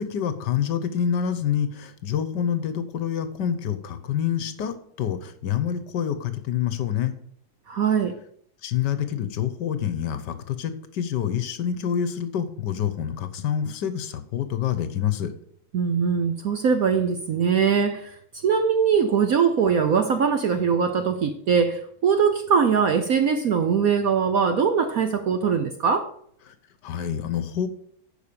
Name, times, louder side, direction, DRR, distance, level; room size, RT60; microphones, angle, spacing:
voice 1, 0.0-7.1 8.6-15.3 26.5-26.6 26.8-27.7, left 9 dB, 65° left, 1.3 m, -27 dB
voice 2, 7.7-8.2 15.7-26.1, right 6 dB, 70° right, 0.8 m, -22 dB
10.5 x 5.0 x 6.8 m
omnidirectional pair, 2.3 m